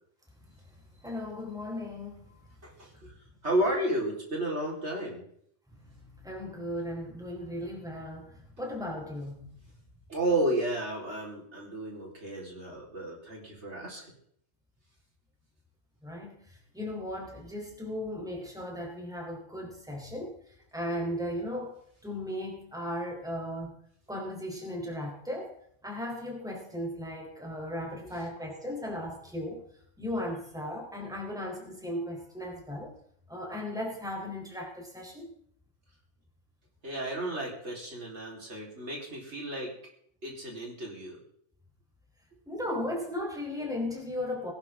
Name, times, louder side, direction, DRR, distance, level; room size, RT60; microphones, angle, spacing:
voice 1, 1.0-2.3 5.8-9.5 16.0-20.3 20.7-21.8 22.0-23.8 24.1-25.6 25.8-29.6 30.0-32.9 33.3-35.3 42.5-44.5, left 1 dB, 5° right, 0 dB, 4.0 m, -36 dB
voice 2, 2.6-3.1 3.4-5.2 10.1-14.1 36.8-39.7 40.2-41.2, right 1 dB, 65° right, -2 dB, 4.7 m, -32 dB
21.0 x 11.5 x 3.8 m, 0.66 s
omnidirectional pair, 1.3 m